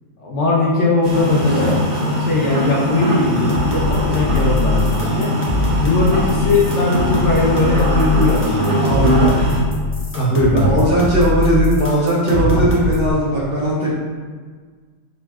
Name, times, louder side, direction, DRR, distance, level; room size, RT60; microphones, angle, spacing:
voice 1, 0.2-1.8 2.2-5.3 5.8-9.3 10.2-10.8 12.4-12.6, left 2 dB, 60° left, -4 dB, 0.9 m, -19 dB
sound 1, 1.0-9.6, equal, 70° right, 1.3 m, -21 dB
sound 2, 3.4-13.1, left 3 dB, 20° left, 0.3 m, -22 dB
voice 2, 8.8-9.5 10.6-14.0, right 1 dB, 55° right, -7 dB, 0.7 m, -18 dB
5.1 x 2.5 x 2.3 m, 1.5 s
omnidirectional pair, 1.5 m